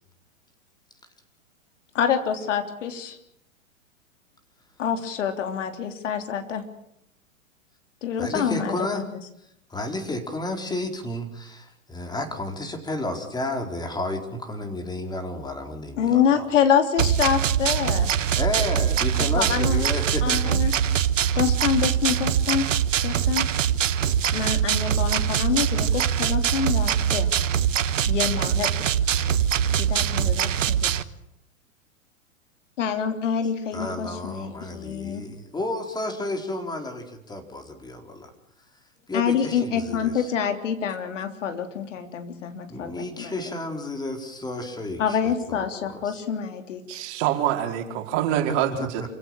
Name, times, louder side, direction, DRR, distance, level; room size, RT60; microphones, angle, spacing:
voice 1, 1.9-3.2 4.8-6.6 8.0-8.9 16.0-18.1 19.2-19.9 20.2-20.7 21.4-22.7 23.0-23.5 24.3-27.3 28.1-28.7 29.8-31.0 32.8-35.2 39.1-43.4 45.0-47.0, left 8 dB, 60° left, 7 dB, 3.6 m, -26 dB
voice 2, 8.2-9.0 9.7-16.5 18.3-20.6 33.7-38.3 39.1-40.3 42.7-46.2 48.8-49.1, left 1 dB, 10° left, 5 dB, 4.5 m, -32 dB
sound 1, 17.0-31.0, right 9 dB, 70° right, 1.3 m, -23 dB
voice 3, 46.9-49.1, right 10 dB, 40° right, 4 dB, 4.8 m, -25 dB
28.5 x 17.0 x 9.0 m, 0.77 s
hypercardioid pair, 110°, 40 cm